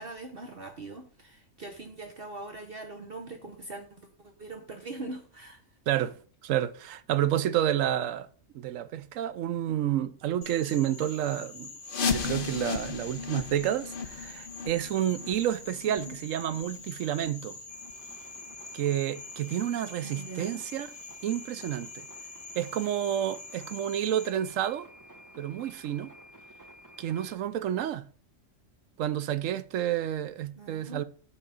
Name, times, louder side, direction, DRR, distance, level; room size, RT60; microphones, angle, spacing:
voice 1, 0.0-5.6 15.9-16.2 20.0-20.6 30.6-31.0, right 2 dB, 50° right, 1.1 m, -42 dB
voice 2, 5.9-6.2 6.4-8.3 8.5-11.7 12.1-17.6 18.7-20.9 21.2-22.1 22.6-24.9 25.4-26.1 27.0-28.0 29.0-31.0, right 11 dB, 75° right, 1.0 m, -30 dB
Frog, 10.4-24.3, left 3 dB, 65° left, 2.8 m, -45 dB
sound 1, 11.9-17.5 17.8-17.9 18.5-18.6 19.2-19.3 19.8-19.9, left 5 dB, 45° left, 0.9 m, -35 dB
sound 2, 17.7-27.4, equal, 15° right, 0.8 m, -52 dB
8.6 x 3.7 x 6.8 m
omnidirectional pair, 1.4 m